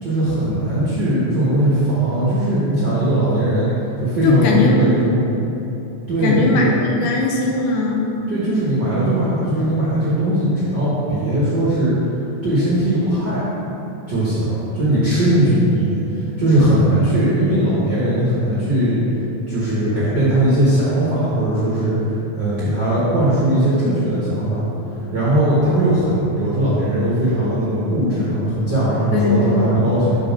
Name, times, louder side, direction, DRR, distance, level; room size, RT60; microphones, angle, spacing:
voice 1, 0.0-3.7 4.0-5.2 6.1-6.7 8.3-12.0 12.4-13.5 14.1-19.0 19.5-22.1 22.3-24.6 25.1-30.2, right 1 dB, 55° right, -9 dB, 1.2 m, -19 dB
voice 2, 4.2-4.9 6.2-8.2 29.1-29.7, left 3 dB, 75° left, -1 dB, 2.0 m, -19 dB
sound 1, 14.8-28.0, right 6 dB, 55° left, 2.2 m, -40 dB
6.3 x 4.3 x 5.7 m, 2.9 s
omnidirectional pair, 3.6 m